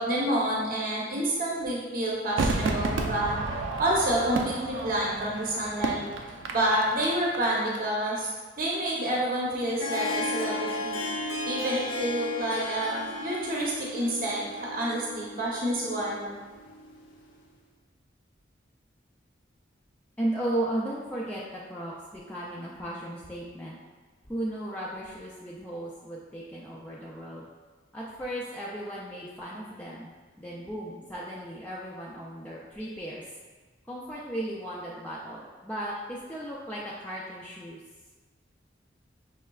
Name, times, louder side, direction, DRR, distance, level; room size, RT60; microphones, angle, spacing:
voice 1, 0.0-3.4 3.8-6.0 6.5-11.0 11.5-16.3, right 1 dB, 45° right, -4 dB, 0.7 m, -28 dB
Crowd / Fireworks, 2.4-7.8 8.0-8.1, right 3 dB, 85° right, 0.5 m, -32 dB
Harp, 9.5-17.3, left 2 dB, 85° left, 0.7 m, -35 dB
voice 2, 20.2-23.8 24.3-27.5 27.9-33.2 33.9-37.8, right 1 dB, 10° left, -6 dB, 0.3 m, -35 dB
5.6 x 3.2 x 2.3 m, 1.3 s
head